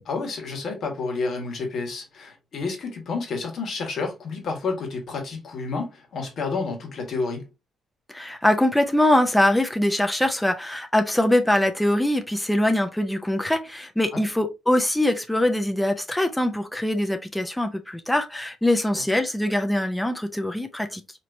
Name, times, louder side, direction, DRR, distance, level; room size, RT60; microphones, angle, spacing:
voice 1, 0.1-7.5 14.1-14.2 18.9-19.0, left 4 dB, 45° left, 1.5 m, -30 dB
voice 2, 8.1-21.0, left 1 dB, 5° left, 0.5 m, -23 dB
4.5 x 2.9 x 2.6 m
cardioid pair, 150°, 0 cm